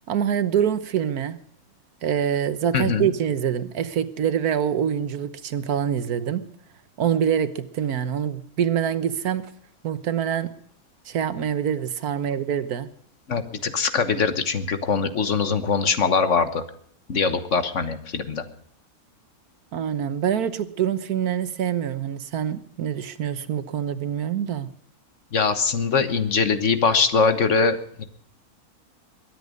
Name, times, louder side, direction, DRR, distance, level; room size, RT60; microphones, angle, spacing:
voice 1, 0.1-1.4 2.0-6.4 7.0-9.5 9.8-10.5 11.0-12.9 19.7-24.7, right 9 dB, 85° right, 13 dB, 1.5 m, -25 dB
voice 2, 2.7-3.1 13.3-16.6 17.1-18.4 25.3-28.0, left 5 dB, 55° left, 11 dB, 1.6 m, -22 dB
22.0 x 10.0 x 5.2 m, 0.62 s
omnidirectional pair, 1.5 m